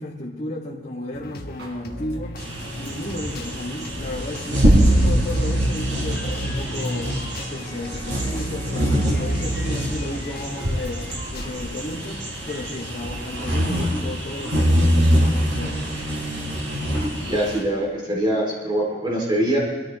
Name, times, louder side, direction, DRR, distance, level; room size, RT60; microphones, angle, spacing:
voice 1, 0.0-7.2 7.5-15.8, left 1 dB, 35° left, -7 dB, 2.0 m, -33 dB
sound 1, 1.1-11.5, left 1 dB, 55° left, 1.3 m, -38 dB
Drum kit, 1.6-2.4 2.7-2.8 2.9-4.0 4.3-4.4 4.6-5.1 5.4-5.7 5.9-6.0 6.2-6.3 6.5-7.3 7.6-7.7 7.9-8.4 8.7-9.0 9.2-9.3 9.5-9.6 9.8-10.6 10.9-11.0 11.1-11.7 11.9-12.2 12.5-12.6 12.8-12.9 13.0-13.9 14.1-14.2 14.4-14.5, equal, 70° right, 4.1 m, -42 dB
sound 2, 2.4-17.6, equal, 85° right, 4.0 m, -23 dB
voice 2, 17.2-19.6, right 1 dB, 25° right, -2 dB, 2.8 m, -23 dB
24.0 x 13.0 x 3.2 m, 1.2 s
head